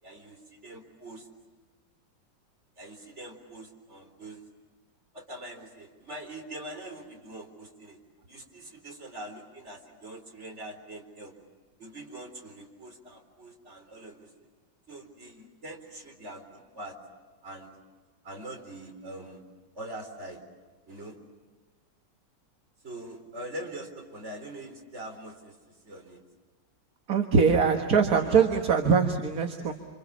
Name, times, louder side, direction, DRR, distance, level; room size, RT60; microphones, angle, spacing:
voice 1, 0.0-1.3 2.8-4.4 5.1-8.0 8.3-11.3 11.8-14.3 14.9-17.0 17.4-17.7 18.2-19.4 19.7-20.4 20.8-21.2 22.8-26.2, right 1 dB, 35° right, 2 dB, 4.4 m, -43 dB
voice 2, 27.1-29.7, right 5 dB, 50° right, 4 dB, 1.9 m, -22 dB
29.0 x 27.0 x 7.2 m, 1.4 s
omnidirectional pair, 2.0 m